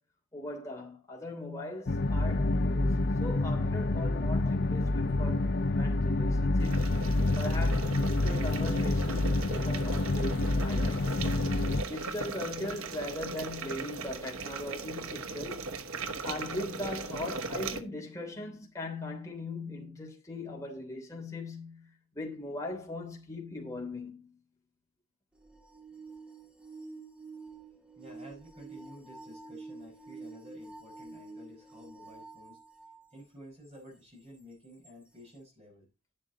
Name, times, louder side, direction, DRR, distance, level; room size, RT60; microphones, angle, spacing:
voice 1, 0.3-7.0 7.4-11.1 11.9-15.6 16.2-24.3, left 2 dB, 15° left, 3.3 m, -40 dB
sound 1, 1.9-11.8, left 2 dB, 55° left, 0.6 m, -28 dB
sound 2, 6.6-17.8, right 3 dB, 85° right, 1.1 m, -38 dB
sound 3, 25.4-33.0 33.7-33.8 34.8-34.9, right 3 dB, 5° right, 1.6 m, -48 dB
voice 2, 28.0-32.6 33.1-35.9, equal, 30° right, 5.3 m, -52 dB
11.5 x 7.4 x 4.0 m
head